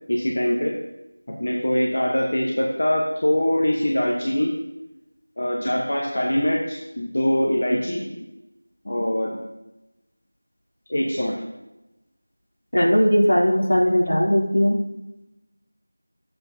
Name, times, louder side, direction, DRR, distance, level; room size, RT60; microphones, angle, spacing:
voice 1, 0.1-0.8 1.3-4.5 5.4-8.1 8.8-9.4 10.9-11.4, left 1 dB, 35° left, -2 dB, 1.0 m, -23 dB
voice 2, 12.7-14.8, equal, 70° left, -5 dB, 3.1 m, -18 dB
11.0 x 7.8 x 2.7 m, 0.95 s
figure-of-eight pair, 180°, 0 cm